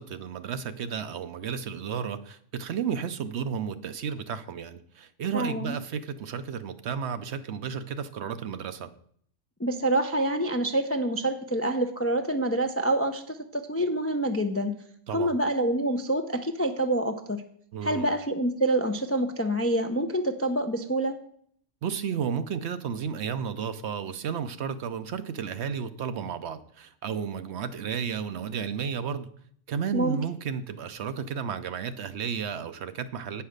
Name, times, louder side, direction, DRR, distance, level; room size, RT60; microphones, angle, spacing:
voice 1, 0.0-8.9 15.1-15.4 17.7-18.1 21.8-29.3 29.7-33.4, right 7 dB, 65° right, 11 dB, 0.9 m, -33 dB
voice 2, 5.3-5.7 9.6-14.7 15.1-17.4 17.8-21.2 29.9-30.2, right 1 dB, 20° left, 6 dB, 0.4 m, -27 dB
8.9 x 5.6 x 6.5 m, 0.63 s
omnidirectional pair, 1.3 m